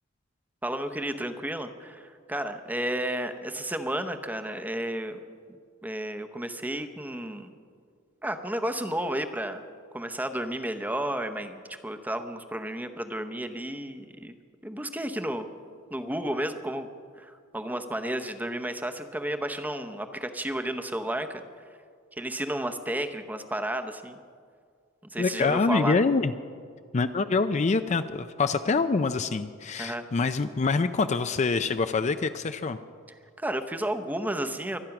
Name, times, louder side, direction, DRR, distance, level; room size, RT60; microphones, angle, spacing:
voice 1, 0.6-5.2 5.8-7.5 8.2-9.6 9.9-14.3 14.6-15.5 15.9-16.9 17.2-21.4 22.1-24.2 25.1-26.0 29.8-30.0 33.4-34.8, right 1 dB, 10° right, 7 dB, 0.8 m, -32 dB
voice 2, 25.2-26.3 26.9-32.8, left 4 dB, 35° left, 10 dB, 0.4 m, -25 dB
24.0 x 9.1 x 5.9 m, 2.1 s
head